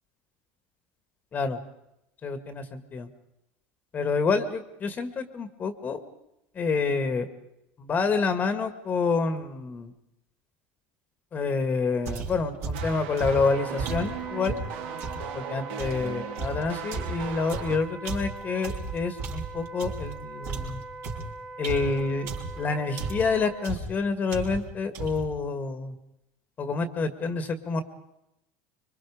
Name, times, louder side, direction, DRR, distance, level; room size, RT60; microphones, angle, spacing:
voice 1, 2.2-3.1 3.9-6.0 6.6-7.3 7.8-9.9 11.3-14.6 15.5-20.8 21.6-22.3 22.6-25.9 26.6-27.8, left 4 dB, 30° left, 9 dB, 2.0 m, -28 dB
sound 1, 12.1-15.3 15.8-20.2 20.4-22.6 23.0-23.4 23.6-24.0 24.3-24.7 24.9-25.3, right 4 dB, 55° right, 4.7 m, -34 dB
sound 2, 12.7-17.8, right 9 dB, 80° right, 2.1 m, -38 dB
Wind instrument woodwind instrument, 13.3-23.7, right 3 dB, 15° right, 3.0 m, -42 dB
26.0 x 24.0 x 5.1 m, 0.85 s
supercardioid pair, 125°, 6 cm